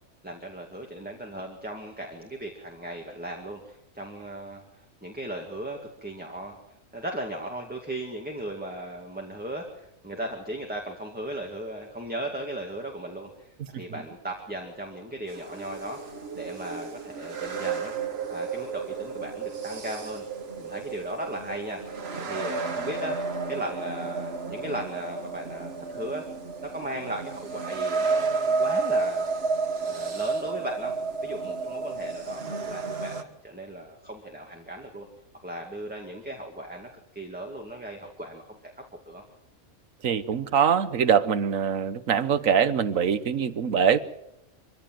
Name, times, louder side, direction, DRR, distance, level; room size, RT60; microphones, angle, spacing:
voice 1, 0.2-6.6 6.9-17.9 18.3-20.2 20.6-21.8 22.2-23.2 23.5-26.2 26.6-29.5 29.8-30.9 31.2-35.1 35.4-38.7 39.1-39.2, right 1 dB, 5° right, 1 dB, 2.2 m, -37 dB
sound 1, 15.3-33.2, right 4 dB, 50° right, 1.7 m, -31 dB
voice 2, 40.0-44.0, right 7 dB, 85° right, 14 dB, 1.4 m, -23 dB
24.0 x 15.5 x 7.7 m, 0.84 s
omnidirectional pair, 1.3 m